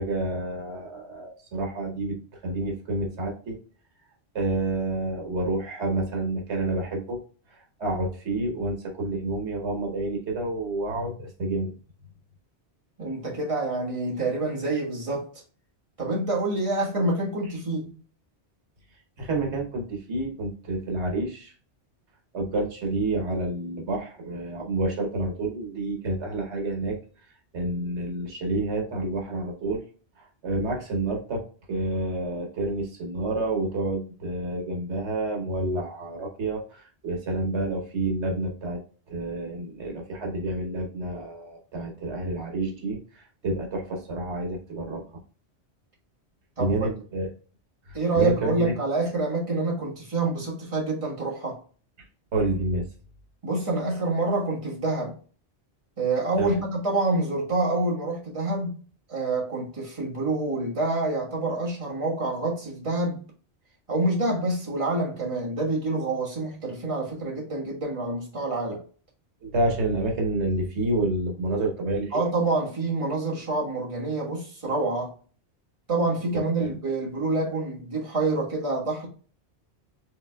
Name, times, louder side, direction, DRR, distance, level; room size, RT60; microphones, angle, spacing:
voice 1, 0.0-2.2 2.4-3.6 4.3-7.2 7.5-11.7 19.2-21.5 22.3-27.0 27.5-29.8 30.2-31.4 31.7-38.8 39.1-45.0 46.6-47.3 47.9-48.7 52.3-52.9 56.4-56.6 69.4-72.1 76.3-76.7, right 2 dB, 85° right, 1.4 m, -29 dB
voice 2, 13.0-15.3 16.0-17.9 46.6-46.8 47.9-51.6 53.4-55.1 56.0-58.7 59.1-63.2 63.9-68.8 72.1-75.1 75.9-79.1, right 2 dB, 30° right, 1.5 m, -27 dB
5.4 x 3.3 x 2.2 m
omnidirectional pair, 1.1 m